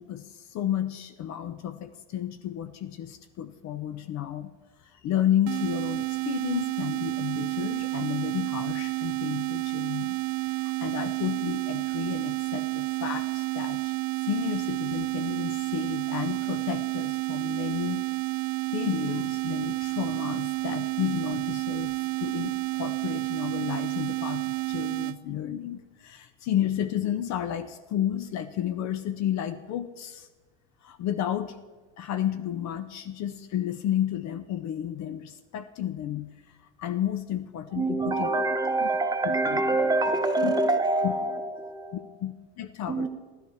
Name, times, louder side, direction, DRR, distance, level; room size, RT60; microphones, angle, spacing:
voice 1, 0.0-4.5 4.9-13.9 14.2-18.0 18.7-30.3 30.8-31.6 32.0-36.3 36.8-38.4 38.8-38.9 39.5-39.6 40.4-40.5 41.0-41.1 41.9-43.1, left 11 dB, 50° left, 11 dB, 0.7 m, -32 dB
sound 1, 5.5-25.2, right 21 dB, 65° right, 0.5 m, -30 dB
voice 2, 37.7-42.1 42.9-43.1, right 2 dB, 10° right, 4 dB, 1.3 m, -26 dB
13.0 x 12.0 x 4.8 m, 1.3 s
supercardioid pair, 105°, 37 cm